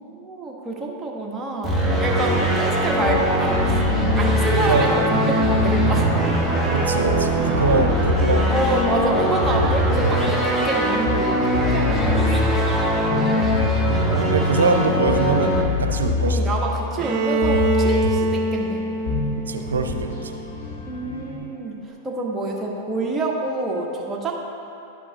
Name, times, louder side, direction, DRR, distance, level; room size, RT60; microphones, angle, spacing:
voice 1, 0.0-3.9 4.2-6.2 8.5-10.3 10.6-12.8 16.2-18.8 20.8-21.8 22.0-24.3, right 2 dB, 15° right, -3 dB, 1.3 m, -27 dB
sound 1, 1.6-21.4, left 3 dB, 70° left, 1.7 m, -26 dB
sound 2, 1.6-15.6, right 1 dB, 5° left, 1.2 m, -22 dB
voice 2, 4.5-4.9 6.7-8.7 14.2-16.6 19.5-20.3, right 4 dB, 90° right, 5 dB, 0.6 m, -23 dB
Bowed string instrument, 17.0-20.8, right 1 dB, 40° right, 0.7 m, -24 dB
11.5 x 5.2 x 2.9 m, 2.7 s
hypercardioid pair, 110°, 0 cm